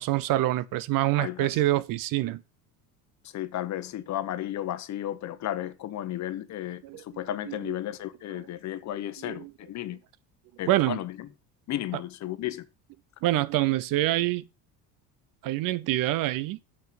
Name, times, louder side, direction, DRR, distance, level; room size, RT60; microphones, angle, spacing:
voice 1, 0.0-2.4 6.8-7.0 7.5-7.7 9.2-9.5 10.7-11.0 13.2-14.4 15.4-16.6, right 16 dB, 60° right, 0.7 m, -26 dB
voice 2, 1.2-1.8 3.2-10.0 10.6-11.3 11.7-12.7, left 12 dB, 50° left, 0.9 m, -34 dB
7.5 x 5.9 x 5.9 m
cardioid pair, 125°, 37 cm